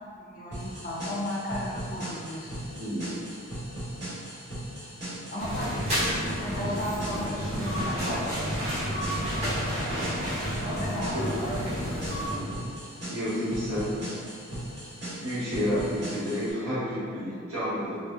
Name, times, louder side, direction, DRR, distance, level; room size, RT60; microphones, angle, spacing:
voice 1, 0.0-2.5 5.3-8.8 10.8-11.4, left 1 dB, 40° left, -5 dB, 0.5 m, -35 dB
sound 1, 0.5-16.5, right 1 dB, 50° right, 1.2 m, -38 dB
voice 2, 2.8-3.1 11.1-11.3 12.2-12.5 13.1-14.0 15.2-18.0, equal, 80° right, -12 dB, 1.4 m, -30 dB
sound 2, 5.4-12.3, equal, 30° right, 0.9 m, -30 dB
3.1 x 2.6 x 2.3 m, 2.2 s
head